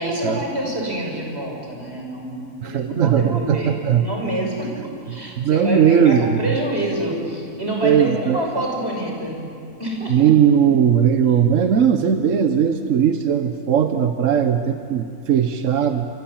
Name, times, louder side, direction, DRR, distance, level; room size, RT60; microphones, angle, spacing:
voice 1, 0.0-9.4 9.8-10.3, right 1 dB, 45° right, 0 dB, 6.2 m, -27 dB
voice 2, 2.6-4.1 5.4-6.6 7.8-8.4 10.1-16.1, right 8 dB, 65° right, 7 dB, 1.3 m, -18 dB
28.5 x 25.5 x 7.4 m, 2.5 s
omnidirectional pair, 1.5 m